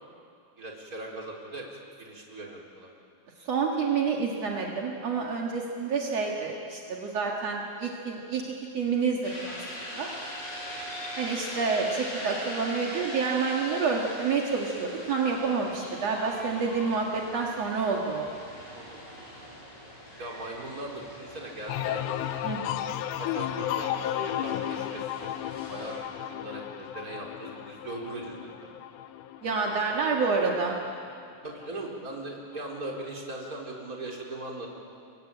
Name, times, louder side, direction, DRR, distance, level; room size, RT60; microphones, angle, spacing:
voice 1, 0.6-2.9 18.7-19.3 20.2-22.0 23.2-25.3 25.7-28.7 31.4-34.7, right 1 dB, 20° right, -1 dB, 3.7 m, -39 dB
voice 2, 3.4-9.6 10.0-10.1 11.2-18.3 22.4-22.8 29.4-30.8, right 5 dB, 60° right, -1 dB, 1.7 m, -28 dB
sound 1, 9.2-26.0, equal, 65° left, 9.8 m, -42 dB
sound 2, 21.7-31.2 31.6-32.2, left 12 dB, 85° left, 3.4 m, -34 dB
29.0 x 23.5 x 8.8 m, 2.4 s
omnidirectional pair, 5.7 m